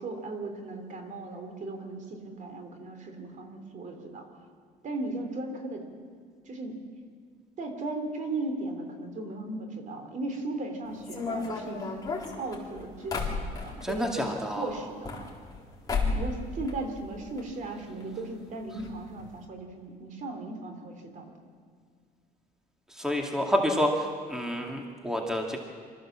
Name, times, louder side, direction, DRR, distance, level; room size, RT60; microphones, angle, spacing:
voice 1, 0.0-4.5 4.8-5.8 6.4-6.8 7.6-12.0 12.4-15.3 16.1-21.3, right 2 dB, 50° right, 5 dB, 3.3 m, -37 dB
sound 1, 11.0-14.0 14.8-15.6 15.9-16.4 16.6-17.4 17.7-17.8 18.0-18.1 18.8-18.9 19.2-19.4, left 4 dB, 20° left, 4.1 m, -32 dB
voice 2, 13.8-14.7 23.0-25.6, equal, 5° right, 1 dB, 2.2 m, -28 dB
24.5 x 14.0 x 7.5 m, 2.1 s
cardioid pair, 110°, 17 cm